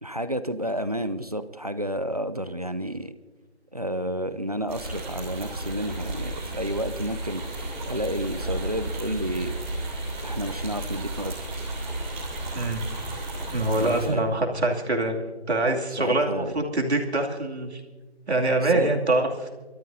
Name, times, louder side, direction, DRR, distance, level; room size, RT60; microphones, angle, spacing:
voice 1, 0.0-3.1 3.7-7.4 7.9-9.5 10.2-11.3 13.7-14.2 16.0-16.6 18.6-18.9, equal, 35° right, 12 dB, 0.5 m, -30 dB
sound 1, 4.7-14.1, right 1 dB, 10° right, 2.9 m, -33 dB
voice 2, 13.5-15.2 15.5-17.8 18.3-19.5, right 2 dB, 70° right, 1 dB, 2.6 m, -24 dB
28.5 x 13.5 x 2.7 m, 1.3 s
figure-of-eight pair, 165°, 34 cm